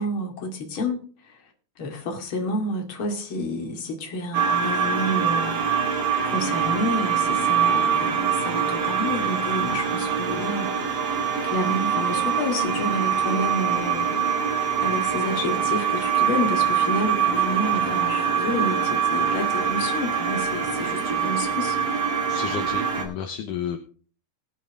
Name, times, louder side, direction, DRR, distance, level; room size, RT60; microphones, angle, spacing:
voice 1, 0.0-1.4 1.8-6.0 6.2-10.7 11.4-14.2 14.8-21.8, left 1 dB, 40° left, 2 dB, 2.6 m, -29 dB
sound 1, 4.3-23.0, right 7 dB, 45° right, 2.4 m, -24 dB
voice 2, 22.3-23.8, left 8 dB, 70° left, 4 dB, 2.2 m, -32 dB
20.5 x 7.5 x 3.7 m, 0.42 s
omnidirectional pair, 4.3 m